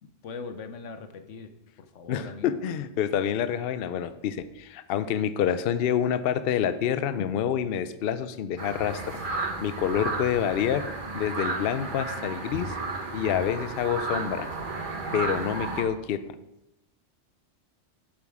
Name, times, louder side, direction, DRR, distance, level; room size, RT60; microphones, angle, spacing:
voice 1, 0.0-2.6, left 4 dB, 90° left, 9 dB, 1.2 m, -41 dB
voice 2, 2.1-9.2 9.6-10.9 11.1-12.7 13.1-14.5 15.1-16.2, left 9 dB, 60° left, 12 dB, 0.7 m, -27 dB
sound 1, 8.6-15.8, right 3 dB, 45° right, 1.5 m, -33 dB
7.8 x 7.2 x 4.8 m, 0.88 s
omnidirectional pair, 1.2 m